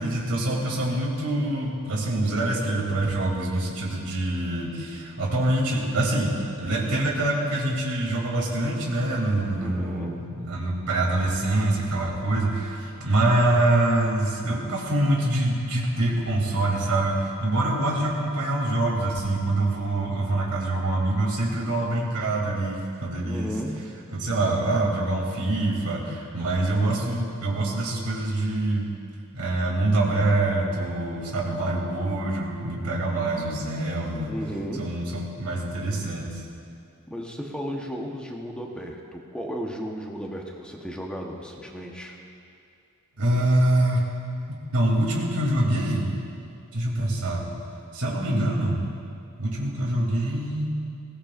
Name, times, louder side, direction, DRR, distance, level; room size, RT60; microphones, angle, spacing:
voice 1, 0.0-23.5 24.1-28.9 29.3-34.3 34.8-36.4 43.2-44.1 44.5-46.1 46.7-47.4 47.9-48.8 49.4-50.7, right 1 dB, 90° right, -2 dB, 2.9 m, -25 dB
voice 2, 9.6-10.2 23.2-24.0 34.3-35.1 37.1-42.2, equal, 5° left, 0 dB, 1.0 m, -34 dB
20.0 x 16.5 x 2.5 m, 2.5 s
head